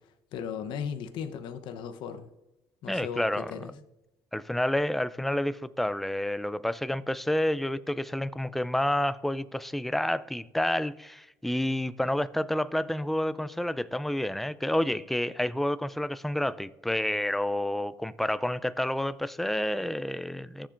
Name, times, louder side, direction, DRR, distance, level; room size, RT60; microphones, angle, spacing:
voice 1, 0.3-2.3 2.8-3.7, left 7 dB, 65° left, 0.8 m, -36 dB
voice 2, 2.9-3.7 4.3-20.7, left 1 dB, ahead, 0.3 m, -29 dB
21.5 x 7.4 x 2.5 m
cardioid pair, 140°, 9 cm